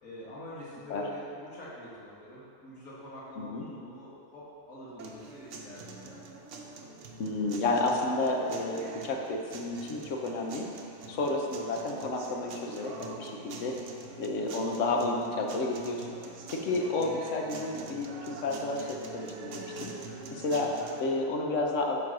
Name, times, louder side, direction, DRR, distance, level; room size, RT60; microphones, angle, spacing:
voice 1, 0.0-6.3 11.1-11.3 16.6-16.8, left 1 dB, 85° left, -8 dB, 2.0 m, -46 dB
sound 1, 5.0-21.0, right 3 dB, 70° right, 1.1 m, -45 dB
voice 2, 7.2-10.7 11.1-13.7 14.2-16.1 16.5-19.9 20.3-20.7 21.0-22.0, left 2 dB, 70° left, 1 dB, 1.2 m, -31 dB
9.2 x 3.9 x 6.0 m, 2.6 s
omnidirectional pair, 1.4 m